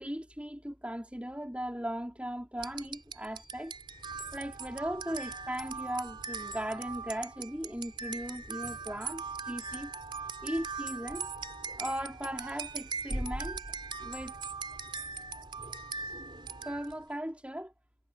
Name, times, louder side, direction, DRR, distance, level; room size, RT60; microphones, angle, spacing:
voice 1, 0.0-3.7 4.3-9.9 10.4-11.3 11.8-13.6 14.0-14.3 16.6-17.7, equal, 5° right, 4.3 m, -38 dB
sound 1, 2.6-17.0, right 4 dB, 25° right, 3.2 m, -40 dB
head